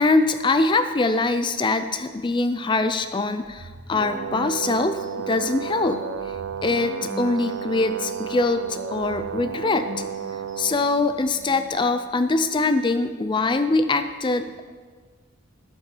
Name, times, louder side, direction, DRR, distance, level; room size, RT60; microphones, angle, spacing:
voice 1, 0.0-6.0 6.6-9.9 10.6-14.6, left 3 dB, 25° left, 10 dB, 0.4 m, -23 dB
sound 1, 3.4-11.7, left 2 dB, 40° right, 1.9 m, -42 dB
Brass instrument, 3.9-10.9, right 8 dB, 70° right, 0.5 m, -32 dB
11.5 x 8.4 x 5.0 m, 1.5 s
head